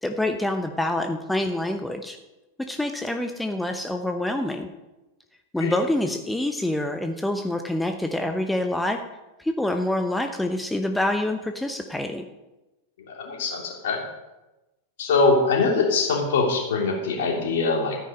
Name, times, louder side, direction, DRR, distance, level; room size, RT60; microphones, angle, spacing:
voice 1, 0.0-2.2 2.7-4.7 5.5-9.0 9.4-12.2, left 1 dB, 5° left, 5 dB, 0.8 m, -26 dB
voice 2, 13.1-14.0 15.0-18.0, left 4 dB, 55° left, 1 dB, 3.0 m, -23 dB
13.0 x 9.6 x 5.3 m, 1.0 s
figure-of-eight pair, 90°, 0 cm